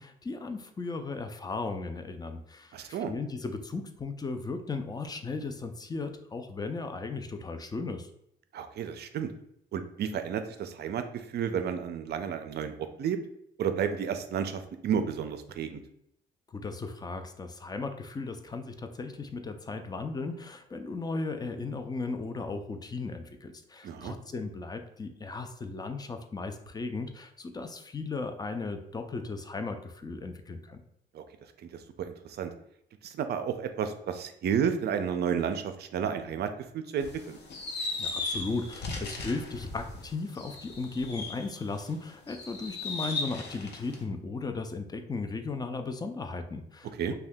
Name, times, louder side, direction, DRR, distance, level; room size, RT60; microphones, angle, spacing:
voice 1, 0.0-8.1 16.5-30.8 38.0-46.9, left 3 dB, 20° left, 7 dB, 0.3 m, -36 dB
voice 2, 2.7-3.1 8.5-9.3 9.7-13.2 13.6-15.8 23.8-24.2 31.1-31.2 31.6-32.5 33.0-36.5 36.7-37.4 47.0-47.1, right 7 dB, 55° right, 9 dB, 0.4 m, -32 dB
sound 1, 37.0-41.8 42.3-44.0, left 3 dB, 60° left, 0.7 m, -37 dB
2.7 x 2.3 x 3.4 m, 0.74 s
cardioid pair, 90°, 20 cm